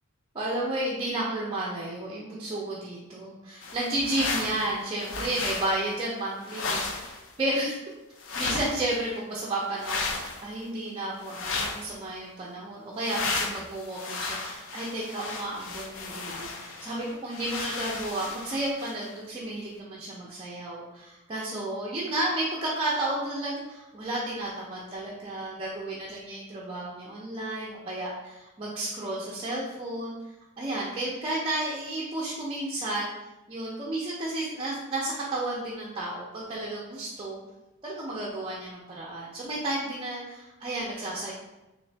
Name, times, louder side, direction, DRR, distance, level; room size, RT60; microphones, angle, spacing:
voice 1, 0.3-7.8 8.4-30.1 30.6-33.1 33.5-37.4 37.8-41.3, right 1 dB, 25° right, -4 dB, 0.5 m, -32 dB
sound 1, 3.6-4.7 5.0-5.8 6.4-7.3 8.2-9.0 9.8-10.4 11.2-11.9 13.0-19.1, left 3 dB, 60° left, 0.5 m, -34 dB
3.7 x 2.5 x 3.2 m, 1.0 s
head